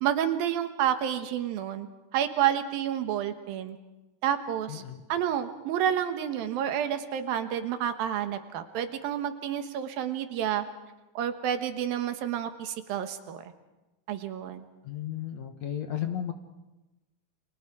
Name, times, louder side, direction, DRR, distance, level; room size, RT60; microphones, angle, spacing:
voice 1, 0.0-1.9 2.1-3.8 4.2-4.8 5.1-10.6 11.1-13.4 14.1-14.6, right 10 dB, 85° right, 8 dB, 3.1 m, -29 dB
voice 2, 4.7-5.0 14.8-16.3, left 10 dB, 60° left, 7 dB, 2.1 m, -34 dB
29.5 x 26.0 x 4.9 m, 1.1 s
omnidirectional pair, 4.1 m